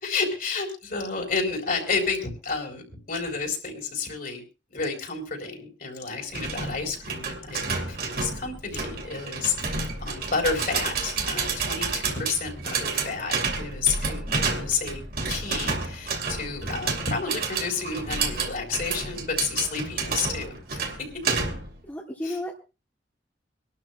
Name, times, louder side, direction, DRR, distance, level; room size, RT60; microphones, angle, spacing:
voice 1, 0.0-4.4 4.7-15.0 15.3-21.1 22.2-22.4, left 4 dB, 55° left, 2 dB, 3.9 m, -30 dB
sound 1, 6.3-21.8, right 4 dB, 55° right, 2.4 m, -30 dB
voice 2, 14.3-14.6 21.9-22.5, left 1 dB, 10° left, -2 dB, 1.5 m, -34 dB
25.5 x 12.0 x 2.2 m, 0.31 s
head